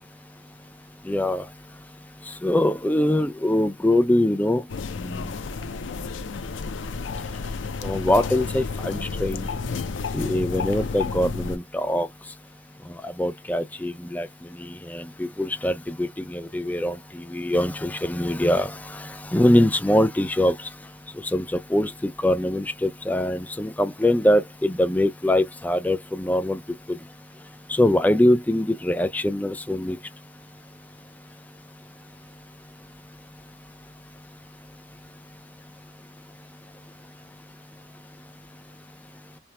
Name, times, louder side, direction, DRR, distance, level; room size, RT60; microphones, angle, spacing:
voice 1, 1.1-1.4 2.4-4.6 5.0-5.2 7.8-9.5 10.1-12.1 13.0-14.3 14.9-17.0 17.3-19.0 19.3-20.5 21.3-21.4 21.7-26.6 27.7-30.0, left 1 dB, 10° left, 0.3 m, -23 dB
sound 1, 4.7-11.6, left 4 dB, 90° left, 0.5 m, -31 dB
2.9 x 2.0 x 3.2 m
head